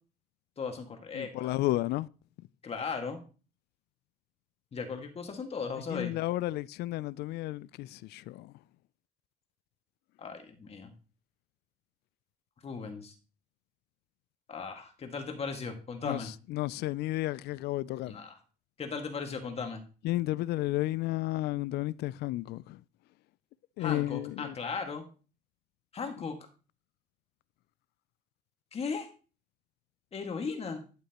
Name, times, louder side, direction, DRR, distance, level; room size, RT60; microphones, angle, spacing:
voice 1, 0.6-1.5 2.6-3.2 4.7-6.1 10.2-10.9 12.6-13.1 14.5-16.3 18.1-18.4 18.8-19.8 23.8-25.0 25.9-26.4 28.7-29.1 30.1-30.8, left 5 dB, 35° left, 1.9 m, -37 dB
voice 2, 1.1-2.1 5.9-8.5 16.0-16.2 16.5-18.1 20.0-22.8 23.8-24.5, left 17 dB, 75° left, 0.4 m, -32 dB
11.5 x 8.1 x 3.0 m
cardioid pair, 110°, 17 cm